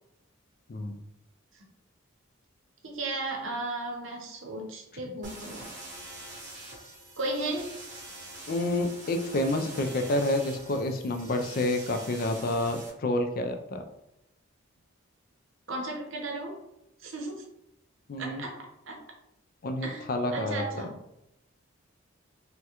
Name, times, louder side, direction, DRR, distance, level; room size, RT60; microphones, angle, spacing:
voice 1, 2.8-5.7 7.2-7.7 15.7-16.6 17.0-17.4 18.2-18.6 18.9-19.0 19.8-20.0 20.3-20.9, right 2 dB, 70° right, 1 dB, 0.7 m, -34 dB
sound 1, 5.2-12.9, right 2 dB, 35° right, 0.9 m, -45 dB
voice 2, 8.5-13.8 18.1-18.4 19.6-20.9, left 1 dB, 45° left, 6 dB, 0.3 m, -29 dB
3.5 x 2.1 x 2.8 m, 0.84 s
head